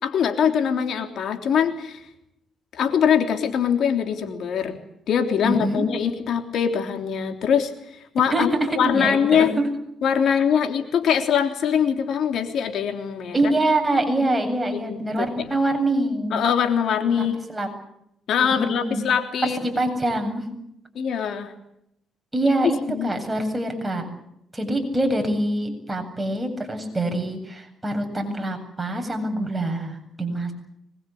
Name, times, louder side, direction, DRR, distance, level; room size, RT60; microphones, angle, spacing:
voice 1, 0.0-2.0 2.7-4.8 5.1-9.5 10.0-13.4 14.7-15.5 16.3-17.3 18.3-19.6 20.9-21.5 22.9-23.1, left 8 dB, 70° left, 6 dB, 3.4 m, -23 dB
voice 2, 5.4-5.8 8.3-9.7 13.3-16.3 17.2-17.7 18.4-19.1 19.4-20.5 22.3-24.1 24.5-30.5, right 1 dB, 15° right, 4 dB, 8.0 m, -25 dB
25.0 x 22.0 x 8.6 m, 0.78 s
cardioid pair, 90°, 0 cm